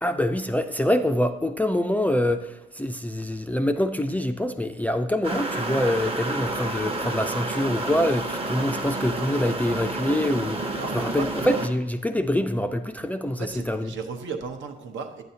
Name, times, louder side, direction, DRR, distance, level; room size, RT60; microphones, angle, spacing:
voice 1, 0.0-13.9, left 1 dB, 10° left, 7 dB, 0.4 m, -25 dB
sound 1, 5.2-11.7, right 2 dB, 30° right, 0.8 m, -30 dB
voice 2, 10.7-11.3 13.4-15.2, right 5 dB, 70° right, 5 dB, 0.9 m, -35 dB
9.3 x 7.9 x 2.8 m, 1.1 s
cardioid pair, 90°, 20 cm